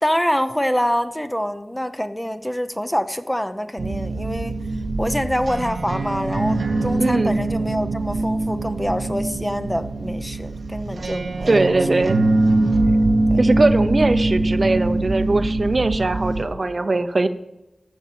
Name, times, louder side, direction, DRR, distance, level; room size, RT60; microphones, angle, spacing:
voice 1, 0.0-4.6 5.0-11.8 13.3-13.4, equal, 5° left, 9 dB, 0.7 m, -25 dB
sound 1, 3.8-16.4, right 2 dB, 85° right, 1.1 m, -22 dB
voice 2, 7.0-7.4 11.5-12.2 13.4-17.3, right 2 dB, 50° right, 10 dB, 0.8 m, -20 dB
14.0 x 5.5 x 7.6 m, 0.92 s
wide cardioid pair, 80°, 0 cm